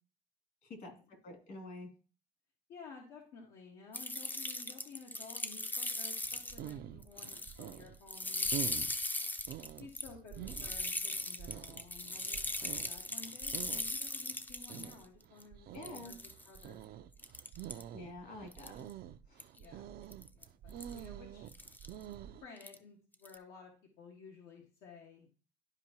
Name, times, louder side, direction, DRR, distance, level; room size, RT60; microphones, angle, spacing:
voice 1, 0.6-0.9 1.2-1.9 15.7-16.1 17.9-18.8 19.3-19.5, left 2 dB, 60° left, 3 dB, 2.8 m, -47 dB
voice 2, 2.7-8.5 9.8-16.8 17.6-17.8 19.6-19.9 20.3-21.5 22.4-23.7 24.0-25.3, left 5 dB, 85° left, -2 dB, 1.6 m, -54 dB
sound 1, 3.9-6.7 7.0-7.8 8.1-14.9 15.4-15.5 15.8-16.6 17.2-17.8 18.5-18.9 19.4-19.6 20.1-20.4 20.8-21.0 21.5-21.9 22.6-22.8 23.1-23.4, left 2 dB, 10° left, 0.5 m, -38 dB
sound 2, 6.2-22.4, right 10 dB, 65° right, 0.5 m, -47 dB
12.0 x 4.6 x 2.9 m, 0.36 s
cardioid pair, 110°, 17 cm